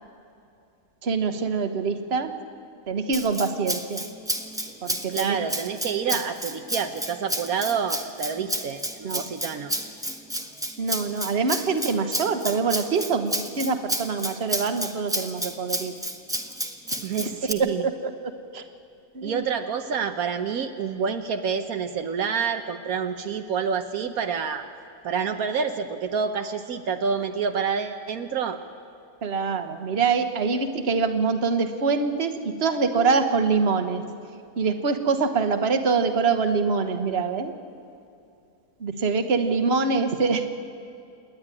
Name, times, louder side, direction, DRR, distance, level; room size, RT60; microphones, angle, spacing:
voice 1, 1.0-2.3 2.9-4.1 4.8-5.4 6.1-6.2 9.0-9.2 10.8-15.9 16.9-17.0 17.6-17.7 18.0-18.1 18.5-18.6 19.1-19.4 29.2-34.0 34.6-37.5 38.8-40.5, right 4 dB, 45° right, 7 dB, 1.4 m, -24 dB
Rattle (instrument), 3.1-17.5, right 1 dB, 5° right, 0.9 m, -31 dB
voice 2, 5.1-9.7 17.0-17.9 19.2-24.6 25.0-28.6, right 6 dB, 75° right, 7 dB, 1.3 m, -28 dB
28.0 x 10.5 x 9.8 m, 2.6 s
omnidirectional pair, 1.5 m